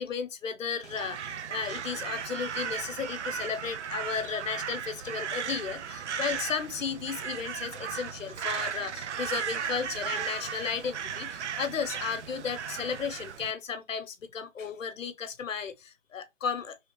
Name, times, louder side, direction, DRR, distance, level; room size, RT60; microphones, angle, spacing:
voice 1, 0.0-16.8, left 6 dB, 90° left, 0.9 m, -34 dB
Crow, 0.8-13.5, right 7 dB, 65° right, 0.5 m, -36 dB
3.1 x 2.9 x 3.1 m
hypercardioid pair, 175°, 37 cm